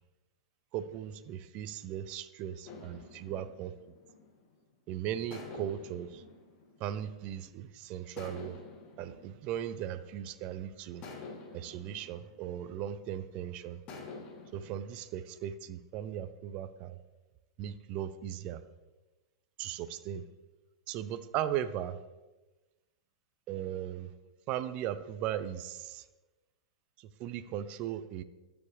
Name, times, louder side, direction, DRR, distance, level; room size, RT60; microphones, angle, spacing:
voice 1, 0.7-3.7 4.9-6.2 6.8-8.6 9.0-11.0 11.5-13.8 14.5-17.0 17.6-18.6 19.6-20.2 20.9-22.0 23.5-24.1 24.5-26.0 27.0-28.2, right 10 dB, 40° right, 13 dB, 0.6 m, -37 dB
sound 1, 2.7-4.7 5.3-7.6 8.2-10.4 11.0-13.2 13.9-14.8, left 4 dB, 35° left, 1.9 m, -49 dB
21.0 x 7.1 x 3.3 m, 1.1 s
figure-of-eight pair, 100°, 3 cm